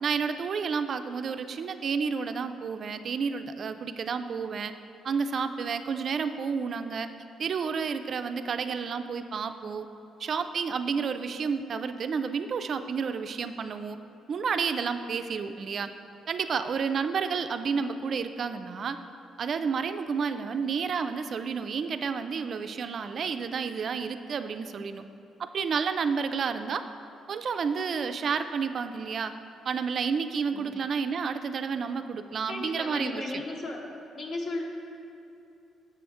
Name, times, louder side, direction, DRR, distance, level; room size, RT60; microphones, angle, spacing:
voice 1, 0.0-4.7 5.0-7.1 7.4-9.9 10.2-14.0 14.3-15.9 16.3-19.0 19.4-25.0 25.4-26.8 27.3-29.3 29.7-33.2, right 5 dB, 55° right, 9 dB, 0.3 m, -30 dB
voice 2, 32.5-33.8 34.1-34.6, left 2 dB, 50° left, 0 dB, 1.0 m, -35 dB
6.8 x 6.1 x 3.5 m, 2.7 s
cardioid pair, 90°, 0 cm